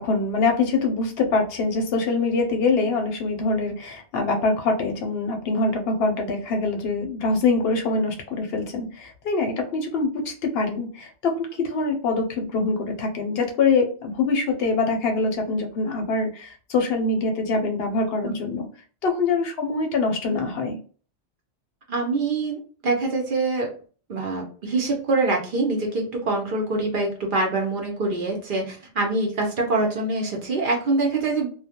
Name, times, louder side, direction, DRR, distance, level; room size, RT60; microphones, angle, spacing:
voice 1, 0.0-18.7 19.0-20.8, left 3 dB, 65° left, 4 dB, 0.7 m, -24 dB
voice 2, 21.9-23.7 24.1-31.5, right 3 dB, 55° right, 1 dB, 0.7 m, -25 dB
2.2 x 2.1 x 2.7 m, 0.40 s
omnidirectional pair, 1.2 m